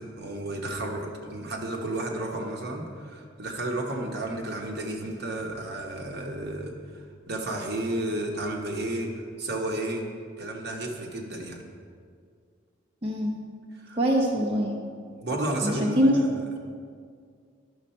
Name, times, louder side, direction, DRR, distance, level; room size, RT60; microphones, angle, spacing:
voice 1, 0.0-10.0 10.4-11.6 13.7-14.0 15.1-16.3, right 1 dB, 55° right, 1 dB, 1.2 m, -32 dB
voice 2, 13.0-13.3 14.0-14.8 15.6-16.1, equal, 25° right, -3 dB, 0.9 m, -23 dB
11.5 x 6.4 x 4.3 m, 2.1 s
head